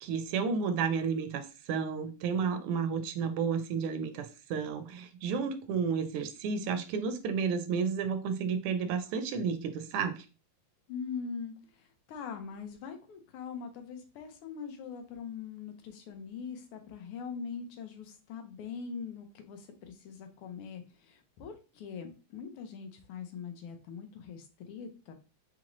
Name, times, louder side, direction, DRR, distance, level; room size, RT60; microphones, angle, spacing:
voice 1, 0.0-10.2, right 6 dB, 90° right, 8 dB, 1.5 m, -32 dB
voice 2, 10.9-25.1, left 6 dB, 85° left, 6 dB, 1.7 m, -42 dB
4.3 x 2.5 x 3.0 m, 0.32 s
omnidirectional pair, 2.4 m